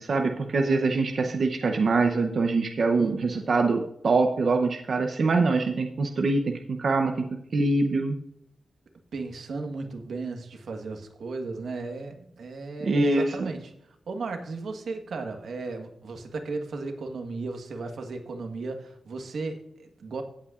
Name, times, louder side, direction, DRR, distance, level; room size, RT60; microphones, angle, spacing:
voice 1, 0.0-7.3 7.5-8.2 12.8-13.5, right 3 dB, 55° right, 4 dB, 0.7 m, -24 dB
voice 2, 9.1-13.7 14.1-20.2, right 3 dB, 80° right, 4 dB, 1.4 m, -35 dB
16.5 x 8.4 x 2.4 m, 0.78 s
wide cardioid pair, 175°, 0 cm